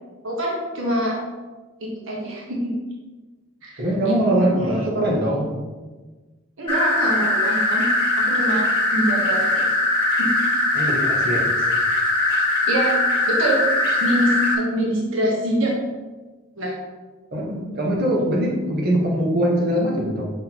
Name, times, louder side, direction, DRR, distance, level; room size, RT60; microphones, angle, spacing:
voice 1, 0.2-1.2 1.8-2.8 3.6-4.8 6.6-7.9 8.2-8.6 8.9-9.7 10.2-10.4 12.7-13.0 13.3-13.6 14.0-15.8 16.6-16.7, right 1 dB, 80° right, -3 dB, 1.3 m, -25 dB
voice 2, 3.8-5.5 10.7-11.5 17.3-20.3, right 1 dB, 55° right, -4 dB, 1.4 m, -22 dB
sound 1, 6.7-14.6, left 2 dB, 25° left, 1.4 m, -21 dB
6.2 x 6.1 x 3.0 m, 1.3 s
head